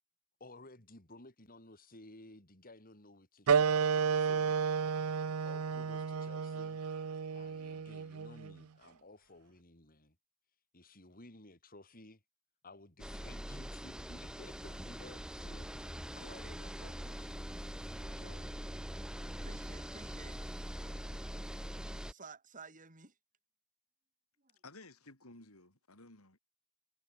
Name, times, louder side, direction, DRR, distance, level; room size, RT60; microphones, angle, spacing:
voice 1, 0.4-5.0 5.4-6.8 7.3-10.2 10.7-12.2 12.6-18.6, left 2 dB, 40° left, 6.0 m, -56 dB
sound 1, 3.5-8.6, right 6 dB, 85° right, 0.6 m, -32 dB
sound 2, 13.0-22.1, equal, 5° right, 2.8 m, -43 dB
voice 2, 19.4-20.4 20.8-21.2 21.7-23.1 24.4-24.5, right 4 dB, 35° right, 4.7 m, -54 dB
voice 3, 24.6-26.4, left 2 dB, 80° left, 6.2 m, -55 dB
head